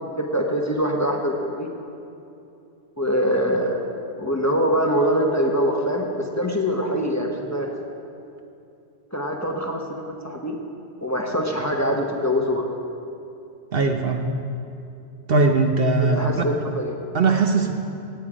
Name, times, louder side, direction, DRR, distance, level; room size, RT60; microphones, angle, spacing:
voice 1, 0.2-1.7 3.0-3.8 4.2-7.7 9.1-10.5 11.0-12.7 16.0-17.0, equal, 15° left, 0 dB, 1.0 m, -24 dB
voice 2, 13.7-14.3 15.3-16.4 17.1-17.7, right 3 dB, 55° right, 4 dB, 1.0 m, -20 dB
17.0 x 9.2 x 5.0 m, 2.7 s
omnidirectional pair, 1.2 m